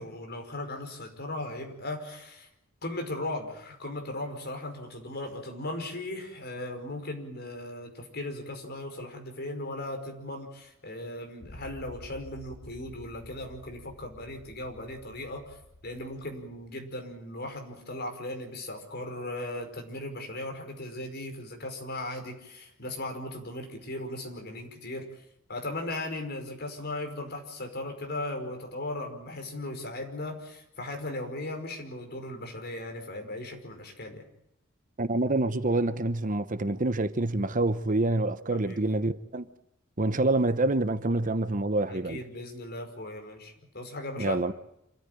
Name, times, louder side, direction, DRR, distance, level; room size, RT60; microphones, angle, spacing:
voice 1, 0.0-2.5 2.8-15.6 15.8-25.1 25.5-34.2 38.5-38.8 41.9-44.4, left 1 dB, 55° left, 5.2 m, -37 dB
sound 1, 11.4-16.7, left 1 dB, 80° left, 3.0 m, -50 dB
voice 2, 35.0-39.5 40.0-42.2 44.2-44.5, right 2 dB, 40° right, 1.0 m, -27 dB
27.0 x 14.0 x 9.2 m
head